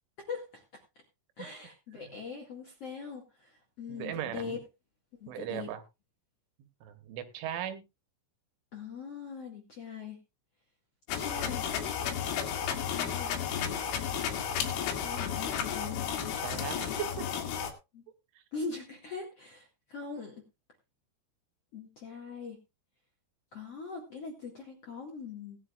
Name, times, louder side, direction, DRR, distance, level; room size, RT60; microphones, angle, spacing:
voice 1, 0.3-0.8 1.4-4.6 5.2-5.7 8.7-10.2 11.1-11.7 12.9-13.3 15.0-16.0 17.9-18.0 18.5-20.4 21.7-22.6 23.5-25.6, left 5 dB, 50° left, 0 dB, 2.0 m, -42 dB
voice 2, 3.9-4.6 5.3-5.8 6.8-7.8 16.4-17.3, right 11 dB, 75° right, 9 dB, 3.5 m, -38 dB
sound 1, 11.1-17.7, left 8 dB, 75° left, 4.1 m, -33 dB
18.5 x 10.5 x 2.4 m, 0.26 s
omnidirectional pair, 5.7 m